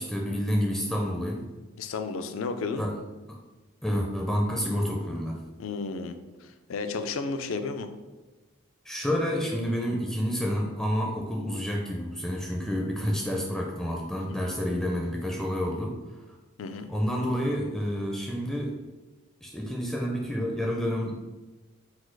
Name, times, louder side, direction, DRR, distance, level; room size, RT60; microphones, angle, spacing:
voice 1, 0.0-1.4 2.8-2.9 3.3-3.4 3.8-5.4 8.9-15.9 16.9-18.7 19.4-21.1, equal, ahead, -1 dB, 0.4 m, -29 dB
voice 2, 1.8-2.8 5.6-6.1 6.4-7.9 16.6-16.9, left 4 dB, 70° left, 8 dB, 0.4 m, -32 dB
4.1 x 2.3 x 4.6 m, 1.2 s
head